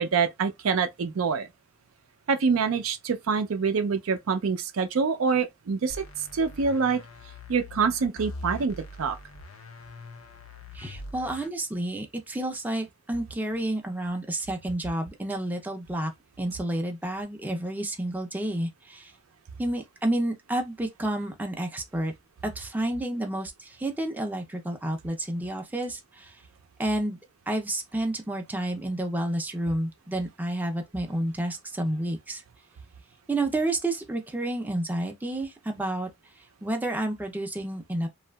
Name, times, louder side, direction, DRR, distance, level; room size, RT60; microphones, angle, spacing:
voice 1, 0.0-1.5 2.3-6.0 6.3-7.0 7.5-9.2, right 5 dB, 75° right, 0.4 m, -25 dB
sound 1, 5.9-11.5, left 2 dB, 85° left, 0.6 m, -42 dB
voice 2, 10.7-16.1 16.4-19.1 19.6-22.1 22.4-26.4 26.8-27.2 27.5-32.4 33.3-36.1 36.6-38.1, right 1 dB, 10° right, 0.4 m, -30 dB
2.7 x 2.4 x 2.2 m
head